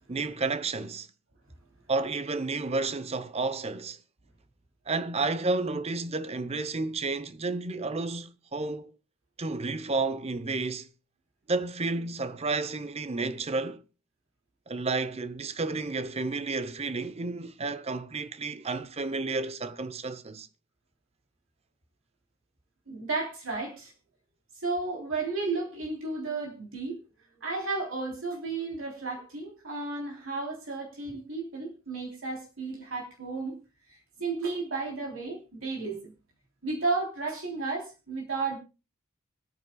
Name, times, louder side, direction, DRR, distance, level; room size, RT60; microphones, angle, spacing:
voice 1, 0.1-1.1 1.9-4.0 4.9-8.9 9.4-10.9 11.5-13.8 14.7-20.5, right 3 dB, 30° right, 0.7 m, -31 dB
voice 2, 22.9-23.9 24.6-27.0 27.4-33.6 33.9-36.1 36.6-38.6, right 3 dB, 65° right, 3.4 m, -33 dB
25.0 x 9.2 x 2.3 m
head